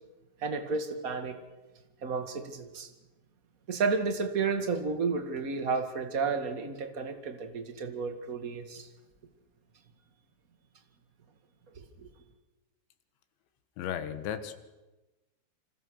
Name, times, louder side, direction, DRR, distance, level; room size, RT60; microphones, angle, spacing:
voice 1, 0.4-1.4 2.0-2.9 3.7-8.9 11.7-12.1, right 4 dB, 50° right, 6 dB, 1.0 m, -32 dB
voice 2, 13.8-14.5, left 9 dB, 90° left, 10 dB, 3.8 m, -34 dB
28.0 x 26.5 x 6.5 m, 1.1 s
omnidirectional pair, 5.0 m